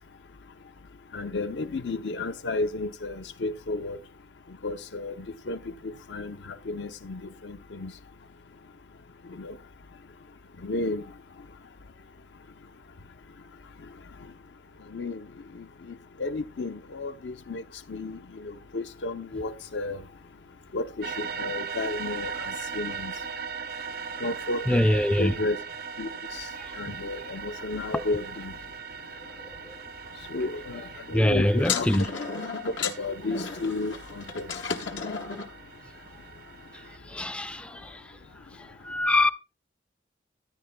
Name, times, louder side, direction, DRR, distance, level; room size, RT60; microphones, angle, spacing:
voice 1, 1.1-4.0 4.6-5.6 5.8-6.4 6.7-7.9 9.3-9.5 10.6-11.0 14.9-15.2 15.6-15.7 16.2-17.6 17.9-20.0 20.7-23.1 24.2-25.6 26.0-26.1 26.8-28.5 30.3-32.1 33.0-34.5, left 2 dB, 70° left, 0.6 m, -32 dB
sound 1, 21.0-37.0, right 6 dB, 55° right, 0.5 m, -39 dB
voice 2, 24.7-25.3 26.6-26.7 27.9-28.0 29.7-29.8 31.1-32.1 37.1-38.0 38.6-39.3, left 1 dB, 5° left, 0.3 m, -24 dB
sound 2, 31.6-35.5, left 6 dB, 85° left, 1.1 m, -33 dB
14.0 x 9.3 x 2.2 m
head